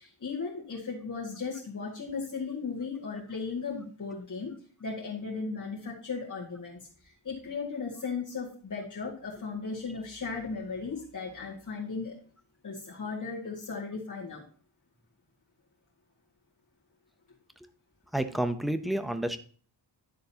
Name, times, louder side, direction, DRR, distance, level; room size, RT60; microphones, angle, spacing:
voice 1, 0.0-4.5 4.8-6.8 7.2-12.1 12.6-14.4, left 4 dB, 45° left, -5 dB, 1.9 m, -36 dB
voice 2, 18.1-19.4, right 1 dB, ahead, 9 dB, 0.5 m, -29 dB
11.0 x 6.6 x 2.8 m, 0.44 s
wide cardioid pair, 175°, 41 cm